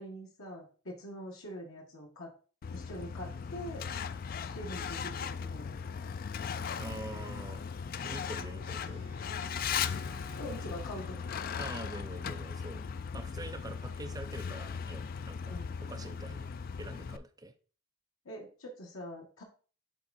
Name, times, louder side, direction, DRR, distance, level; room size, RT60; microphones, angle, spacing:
voice 1, 0.0-2.3 2.7-3.9 4.5-5.9 10.4-11.2 15.5-15.8 18.2-19.4, equal, 75° left, 0 dB, 1.6 m, -44 dB
Truck, 2.6-17.2, left 6 dB, 45° left, 0.3 m, -38 dB
voice 2, 6.8-7.6 8.0-9.0 11.6-12.8 13.1-15.6 15.9-16.5 16.8-17.5, right 2 dB, 15° right, 6 dB, 0.6 m, -45 dB
Wind instrument woodwind instrument, 8.6-12.9, right 4 dB, 65° right, 1.7 m, -56 dB
7.0 x 3.8 x 4.1 m, 0.38 s
head